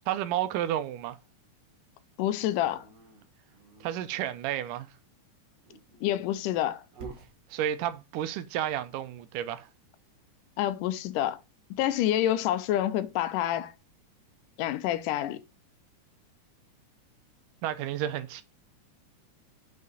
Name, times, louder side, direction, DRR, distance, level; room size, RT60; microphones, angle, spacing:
voice 1, 0.1-1.2 3.8-4.9 7.5-9.7 17.6-18.4, right 11 dB, 85° right, 2.3 m, -31 dB
voice 2, 2.2-2.8 6.0-6.8 10.6-11.4 11.7-13.7 14.6-15.4, left 12 dB, 80° left, 2.2 m, -28 dB
Dog, 2.3-3.9 5.5-7.3, right 4 dB, 60° right, 0.9 m, -48 dB
6.0 x 5.4 x 4.0 m
omnidirectional pair, 3.7 m